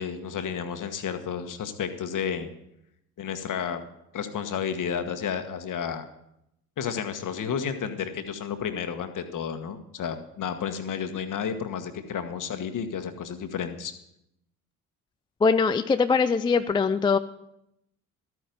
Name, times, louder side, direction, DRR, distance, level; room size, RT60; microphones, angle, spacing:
voice 1, 0.0-2.5 3.2-3.8 4.1-6.0 6.8-13.9, left 7 dB, 45° left, 8 dB, 1.4 m, -31 dB
voice 2, 15.4-17.2, left 5 dB, 10° left, 10 dB, 0.3 m, -22 dB
13.0 x 9.3 x 5.3 m, 0.82 s
hypercardioid pair, 55°, 44 cm